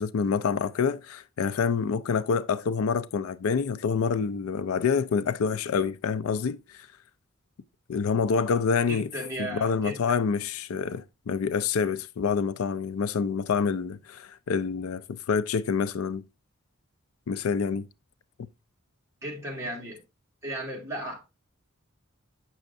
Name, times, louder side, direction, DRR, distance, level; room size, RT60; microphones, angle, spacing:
voice 1, 0.0-6.6 7.9-9.1 9.4-16.2 17.3-17.9, left 6 dB, 85° left, 0.4 m, -27 dB
voice 2, 8.9-10.0 19.2-20.0 20.4-21.2, right 1 dB, 15° right, 1.9 m, -35 dB
7.6 x 6.2 x 2.6 m
head